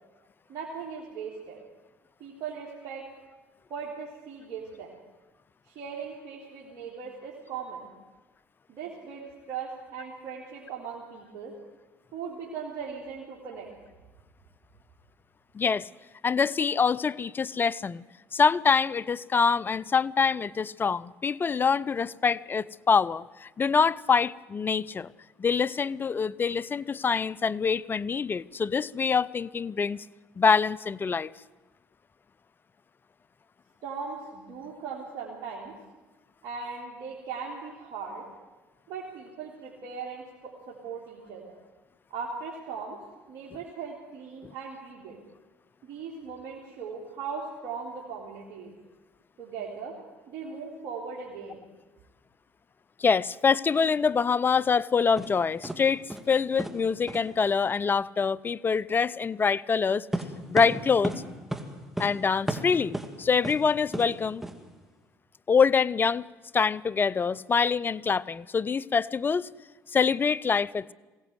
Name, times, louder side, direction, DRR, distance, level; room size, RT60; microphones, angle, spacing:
voice 1, 0.5-1.6 2.2-3.0 3.7-4.9 5.7-7.9 8.7-11.5 12.1-13.7 33.8-35.8 36.4-38.2 38.9-41.6 42.1-43.0 43.3-45.2 45.8-48.7 49.4-50.0 50.3-51.6, right 5 dB, 65° right, 3.5 m, -39 dB
voice 2, 15.5-15.9 16.2-18.0 18.3-25.1 25.4-30.0 30.4-31.3 44.4-44.5 53.0-60.1 60.5-61.1 62.0-64.4 65.5-66.2 66.5-69.5 69.9-70.9, left 5 dB, 30° left, 0.6 m, -25 dB
sound 1, 55.2-55.3 55.6-55.8 56.1-56.3 56.6-56.8 57.1-57.2 60.1-61.2 61.5-61.7 62.0-62.1 62.5-63.1 63.4-63.6 63.9-64.1 64.4-64.5, right 1 dB, 5° right, 2.8 m, -32 dB
21.5 x 17.0 x 8.1 m
hypercardioid pair, 65°, 7 cm